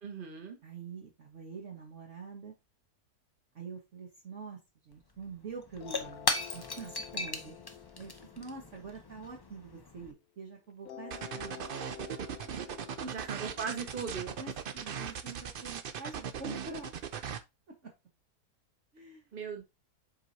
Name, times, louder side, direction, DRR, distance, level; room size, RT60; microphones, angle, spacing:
voice 1, 0.0-0.6 13.1-14.4 19.3-19.6, right 6 dB, 35° right, 1.6 m, -38 dB
voice 2, 0.6-2.5 3.5-7.6 8.0-11.7 13.0-13.1 14.4-16.9 17.7-17.9 18.9-19.2, right 4 dB, 50° right, 1.5 m, -45 dB
Shatter / Crushing, 4.9-5.0 5.2-10.1, left 3 dB, 35° left, 0.3 m, -37 dB
sound 1, 5.8-10.2 10.9-15.8, left 10 dB, 70° left, 1.1 m, -51 dB
sound 2, 11.1-17.4, right 7 dB, 70° right, 0.5 m, -39 dB
7.5 x 4.7 x 2.7 m
omnidirectional pair, 1.7 m